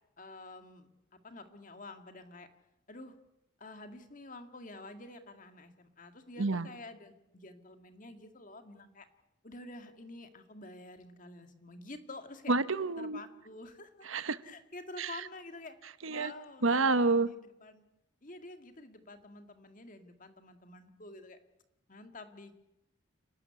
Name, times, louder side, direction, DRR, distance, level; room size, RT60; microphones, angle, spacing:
voice 1, 0.2-2.5 2.9-3.2 3.6-9.1 9.4-12.5 13.0-14.1 14.4-15.8 16.1-17.8 18.2-21.4 21.9-22.5, left 2 dB, 40° left, 7 dB, 2.0 m, -49 dB
voice 2, 6.4-6.7 12.5-13.2 14.1-14.4 15.0-15.2 16.0-16.3 16.6-17.3, right 3 dB, 80° right, 14 dB, 1.1 m, -28 dB
30.0 x 12.5 x 9.6 m, 0.88 s
head